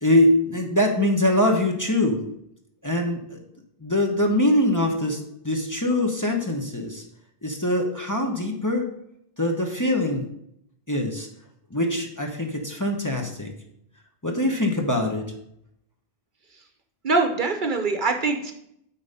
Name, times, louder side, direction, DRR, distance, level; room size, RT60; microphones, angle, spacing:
voice 1, 0.0-2.2 2.8-3.4 3.8-7.0 7.4-8.9 9.4-10.3 10.9-11.3 11.7-13.5 14.2-15.3, left 1 dB, 20° left, 1 dB, 0.9 m, -23 dB
voice 2, 17.0-18.5, right 3 dB, 55° right, 6 dB, 0.9 m, -23 dB
8.6 x 4.2 x 5.5 m, 0.75 s
omnidirectional pair, 1.1 m